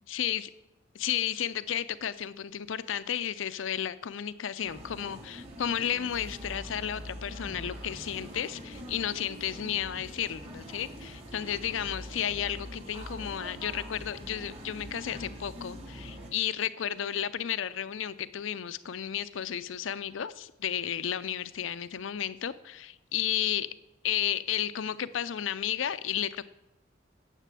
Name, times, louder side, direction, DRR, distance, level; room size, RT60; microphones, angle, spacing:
voice 1, 0.1-0.5 0.9-23.7 24.0-26.5, left 9 dB, 90° left, 14 dB, 0.5 m, -33 dB
sound 1, 4.6-16.3, equal, 30° right, 2.4 m, -43 dB
10.0 x 7.4 x 7.6 m, 0.94 s
head